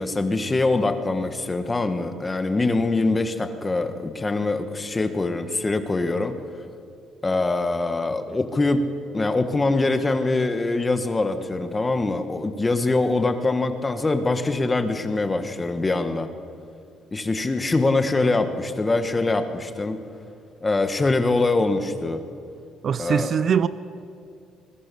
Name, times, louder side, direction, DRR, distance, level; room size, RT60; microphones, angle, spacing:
voice 1, 0.0-6.4 7.2-8.8 9.1-16.3 17.1-20.0 20.6-22.2 23.0-23.5, left 2 dB, 15° left, 1.3 m, -23 dB
voice 2, 22.8-23.7, right 7 dB, 40° right, 0.5 m, -21 dB
26.0 x 21.5 x 6.9 m
cardioid pair, 155°, 0 cm